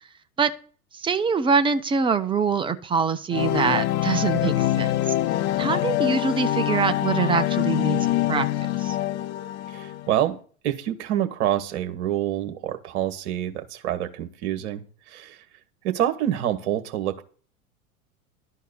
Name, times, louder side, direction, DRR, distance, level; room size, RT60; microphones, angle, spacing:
voice 1, 0.9-5.0 5.6-8.5 8.8-9.0, right 5 dB, 10° right, 10 dB, 0.7 m, -24 dB
sound 1, 3.3-10.2, left 14 dB, 25° left, 0.5 m, -25 dB
voice 2, 9.7-10.4 10.6-15.4 15.8-17.2, right 11 dB, 50° right, 8 dB, 1.7 m, -27 dB
12.0 x 4.6 x 8.2 m, 0.42 s
figure-of-eight pair, 90°, 43 cm